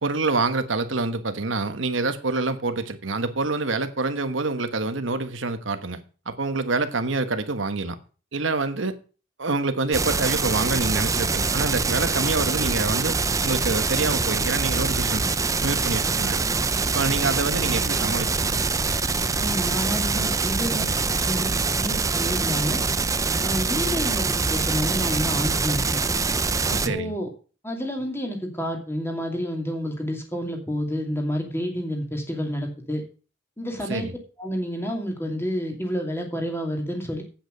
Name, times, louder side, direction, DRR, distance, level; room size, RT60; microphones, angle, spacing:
voice 1, 0.0-8.0 8.3-9.0 9.4-15.3 15.6-16.5 16.9-18.6 26.7-27.1 33.9-34.1, right 3 dB, 75° right, 1.3 m, -26 dB
sound 1, 9.9-26.9, right 4 dB, 15° right, 0.5 m, -24 dB
voice 2, 19.4-22.8 23.4-26.0 26.7-27.3 27.6-33.0 33.6-34.1 34.4-37.2, equal, 15° left, 2.6 m, -29 dB
8.8 x 8.0 x 6.4 m
head